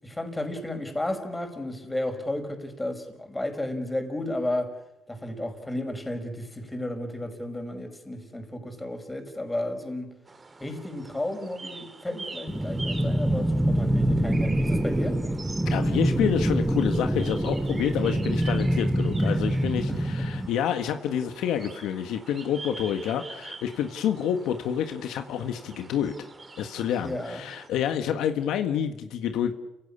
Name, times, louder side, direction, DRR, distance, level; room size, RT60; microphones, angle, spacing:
voice 1, 0.0-4.7 5.1-10.1 10.6-15.2 19.9-20.4 27.0-27.4, left 1 dB, 15° left, 5.5 m, -33 dB
sound 1, 10.3-27.7, right 3 dB, 30° right, 2.7 m, -45 dB
sound 2, 12.5-20.5, right 1 dB, 10° right, 1.2 m, -25 dB
voice 2, 15.6-26.1 26.6-29.5, left 9 dB, 85° left, 1.6 m, -28 dB
30.0 x 16.5 x 8.6 m
cardioid pair, 90°, 0 cm